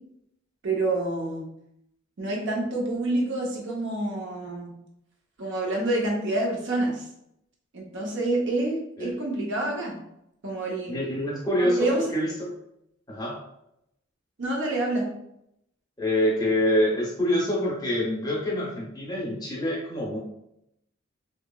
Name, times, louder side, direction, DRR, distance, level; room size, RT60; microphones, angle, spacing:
voice 1, 0.6-1.5 2.2-4.7 5.4-7.0 7.7-10.0 10.4-11.0 11.6-12.1 14.4-15.1, right 2 dB, 60° right, -1 dB, 0.7 m, -27 dB
voice 2, 10.9-12.6 13.1-13.4 16.0-20.2, left 1 dB, 20° left, -4 dB, 0.6 m, -26 dB
2.8 x 2.3 x 2.2 m, 0.80 s
head